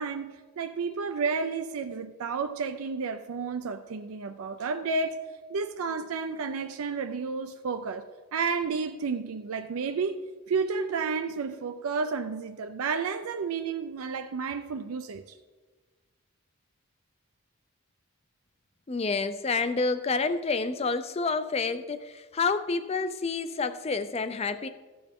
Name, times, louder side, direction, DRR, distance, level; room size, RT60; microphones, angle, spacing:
voice 1, 0.0-5.2 5.5-15.4, right 5 dB, 70° right, 0.4 m, -31 dB
voice 2, 18.9-24.7, left 4 dB, 25° left, 0.4 m, -29 dB
14.0 x 7.0 x 3.6 m
head